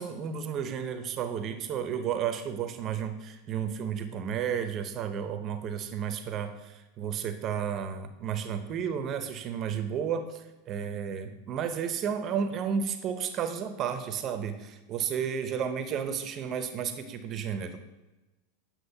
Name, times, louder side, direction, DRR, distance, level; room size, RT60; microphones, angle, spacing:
voice 1, 0.0-17.8, right 7 dB, 40° right, 9 dB, 0.6 m, -32 dB
9.5 x 6.0 x 2.7 m, 1.1 s
hypercardioid pair, 105°, 0 cm